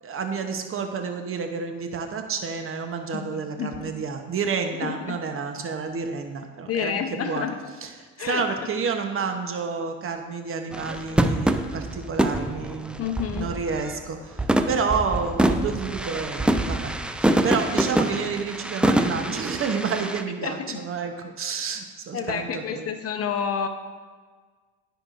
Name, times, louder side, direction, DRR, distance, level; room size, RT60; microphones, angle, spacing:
voice 1, 0.0-7.5 7.8-7.9 8.2-16.9 17.2-22.9, right 5 dB, 35° right, 5 dB, 1.0 m, -30 dB
voice 2, 3.1-3.9 4.8-5.2 6.7-7.6 8.2-8.4 13.0-13.5 20.4-20.8 22.1-23.7, left 7 dB, 40° left, 7 dB, 0.9 m, -29 dB
sound 1, 10.7-14.0 14.4-20.2, right 1 dB, 5° right, 0.3 m, -25 dB
14.5 x 4.9 x 2.6 m, 1.5 s
hypercardioid pair, 75°, 37 cm